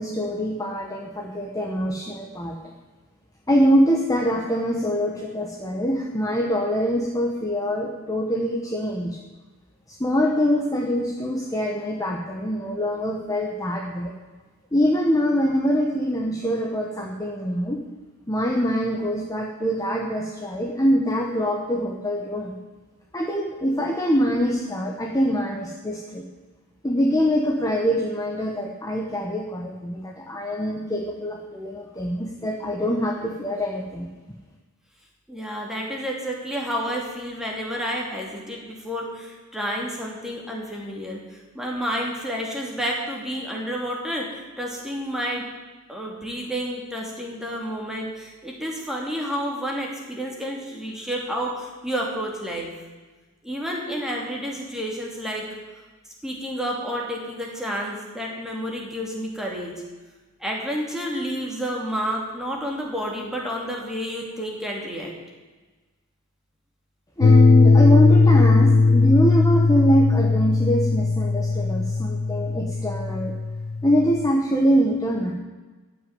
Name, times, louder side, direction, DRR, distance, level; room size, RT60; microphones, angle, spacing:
voice 1, 0.0-2.5 3.5-9.2 10.0-14.1 14.7-17.8 18.3-22.6 23.1-26.2 26.8-34.1 67.2-73.4 73.8-75.3, equal, 15° left, 0 dB, 1.1 m, -24 dB
voice 2, 35.3-45.5 45.9-52.7 53.4-55.5 56.2-59.7 60.4-65.1, equal, ahead, -2 dB, 2.6 m, -30 dB
sound 1, 67.2-74.3, left 3 dB, 60° left, 0.4 m, -18 dB
14.5 x 6.2 x 9.5 m, 1.3 s
head